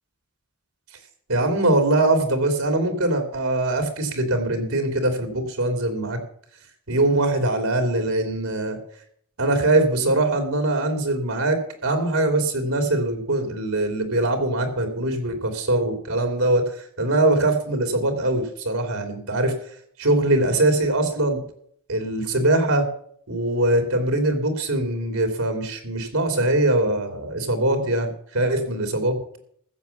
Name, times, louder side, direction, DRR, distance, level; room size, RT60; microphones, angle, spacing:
voice 1, 1.3-6.2 6.9-8.8 9.4-19.5 20.0-21.4 21.9-22.9 23.3-29.2, right 2 dB, 90° right, 6 dB, 3.1 m, -22 dB
15.0 x 7.1 x 7.1 m, 0.63 s
head